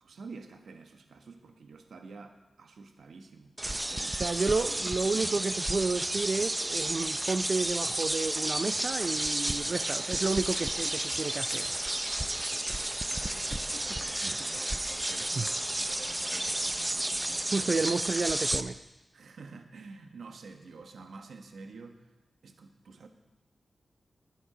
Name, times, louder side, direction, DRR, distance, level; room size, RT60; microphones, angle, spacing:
voice 1, 0.0-4.2 13.1-17.7 19.1-22.1 22.4-23.1, right 4 dB, 85° right, 5 dB, 1.3 m, -49 dB
sound 1, 3.6-18.6, right 1 dB, 20° right, 0.7 m, -32 dB
voice 2, 4.1-11.7 15.4-15.5 17.5-18.7, right 4 dB, 55° right, 10 dB, 0.5 m, -31 dB
19.5 x 7.2 x 5.1 m, 1.0 s
cardioid pair, 55°, 0 cm